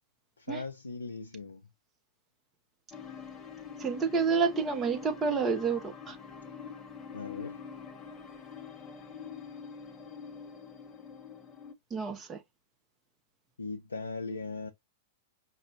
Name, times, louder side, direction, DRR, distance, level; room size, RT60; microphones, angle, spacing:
voice 1, 0.4-1.6 7.1-7.6 13.6-14.7, left 3 dB, 80° left, 0.5 m, -39 dB
sound 1, 2.9-11.7, left 6 dB, 20° left, 0.9 m, -45 dB
voice 2, 3.8-6.2 11.9-12.4, right 5 dB, 20° right, 1.1 m, -29 dB
5.3 x 2.4 x 2.9 m
figure-of-eight pair, 95°, 0 cm